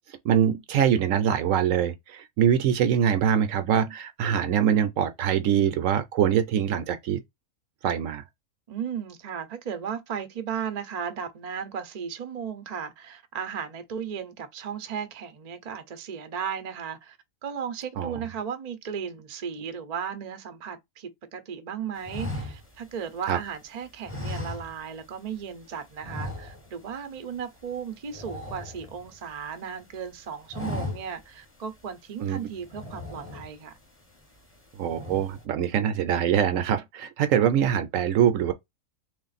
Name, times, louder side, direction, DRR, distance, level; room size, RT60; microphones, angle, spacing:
voice 1, 0.2-7.2 7.8-8.2 18.0-18.2 23.3-23.4 32.2-32.5 34.8-38.5, right 9 dB, 70° right, 0.9 m, -23 dB
voice 2, 8.7-17.2 17.4-33.8, right 7 dB, 50° right, 0.5 m, -35 dB
sound 1, 22.0-23.5 24.0-25.1 25.4-25.6 26.0-26.9 27.2-27.4 27.7-29.4 29.8-30.1 30.4-31.3 31.8-31.9 32.6-33.8 34.2-34.6 34.8-35.4, left 2 dB, 10° left, 0.7 m, -37 dB
3.3 x 2.5 x 4.0 m
omnidirectional pair, 1.5 m